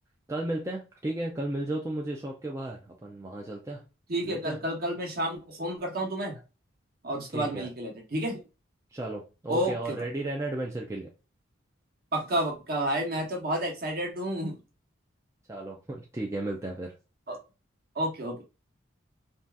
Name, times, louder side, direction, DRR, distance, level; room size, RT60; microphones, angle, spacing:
voice 1, 0.3-3.8 4.2-4.6 7.3-7.7 8.9-11.1 15.5-17.0, right 2 dB, 15° right, 0.3 m, -34 dB
voice 2, 4.1-6.4 7.0-8.4 9.5-10.1 12.1-14.6 17.3-17.4 17.9-18.4, right 1 dB, 50° right, 1.0 m, -30 dB
2.7 x 2.3 x 3.3 m
head